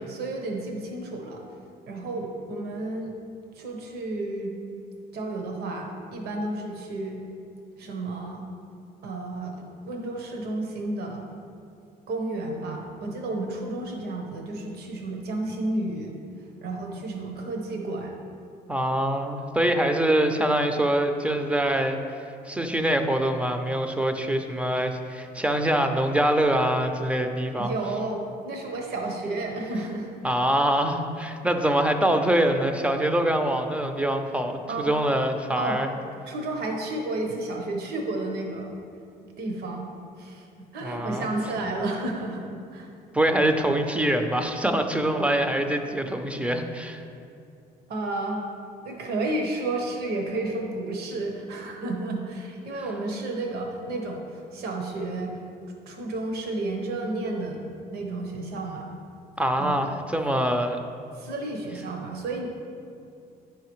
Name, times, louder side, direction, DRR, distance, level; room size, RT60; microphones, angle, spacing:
voice 1, 0.1-1.4 1.9-3.1 3.5-4.5 5.1-7.2 7.8-8.5 9.0-11.3 12.1-16.2 16.6-18.1 27.6-30.1 34.7-34.9 35.6-35.8 36.3-38.7 39.4-39.9 40.2-40.5 40.7-42.9 47.9-48.4 48.8-55.4 55.9-57.7 57.9-58.9 59.6-59.9 61.1-62.5, right 2 dB, 70° right, 1 dB, 1.0 m, -31 dB
voice 2, 18.7-22.2 22.5-27.7 30.2-35.9 40.8-41.3 43.1-47.0 59.4-60.8, right 1 dB, 5° right, 6 dB, 0.5 m, -24 dB
8.9 x 5.7 x 3.1 m, 2.5 s
cardioid pair, 110°, 17 cm